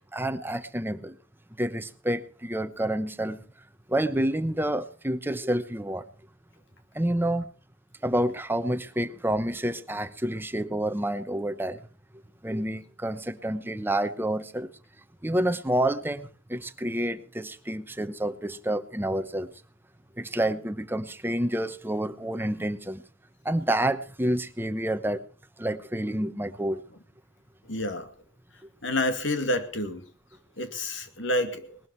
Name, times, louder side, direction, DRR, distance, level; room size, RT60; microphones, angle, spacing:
voice 1, 0.1-1.2 1.6-3.4 3.9-6.0 6.9-7.5 8.0-11.8 12.4-14.7 15.2-19.5 20.2-23.0 23.4-25.2 25.6-26.8, right 1 dB, 10° right, 11 dB, 0.9 m, -28 dB
voice 2, 27.7-28.1 28.8-30.0 30.6-31.8, left 1 dB, 70° left, 8 dB, 2.3 m, -28 dB
19.5 x 12.5 x 4.5 m, 0.39 s
head